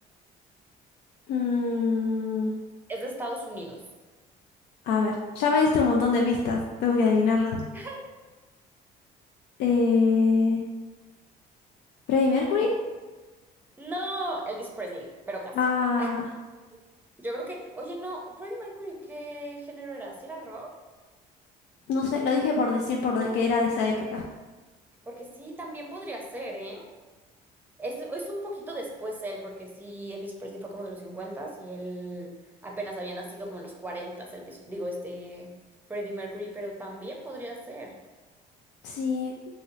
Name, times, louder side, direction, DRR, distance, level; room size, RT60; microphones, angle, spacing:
voice 1, 1.3-2.5 4.9-7.6 9.6-10.6 12.1-12.7 15.6-16.3 21.9-24.2 38.8-39.3, left 4 dB, 85° left, -1 dB, 0.4 m, -24 dB
voice 2, 2.9-3.8 7.7-8.0 13.8-15.5 16.0-16.1 16.7-16.8 17.2-20.7 25.1-26.9 27.8-32.3 32.6-35.5 35.9-37.9, right 1 dB, 10° right, 0 dB, 0.6 m, -36 dB
2.7 x 2.0 x 3.8 m, 1.3 s
cardioid pair, 110°, 17 cm